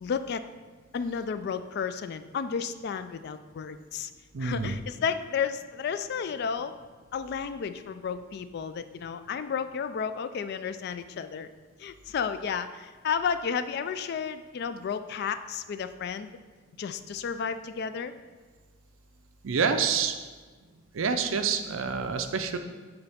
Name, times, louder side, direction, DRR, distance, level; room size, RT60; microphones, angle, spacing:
voice 1, 0.0-0.4 0.9-4.1 4.4-6.7 7.1-11.5 11.8-16.3 16.8-18.1, left 6 dB, 55° left, 11 dB, 0.3 m, -32 dB
voice 2, 4.3-4.8 19.4-20.2 20.9-22.6, right 5 dB, 90° right, 7 dB, 0.5 m, -27 dB
8.0 x 3.9 x 3.5 m, 1.4 s
head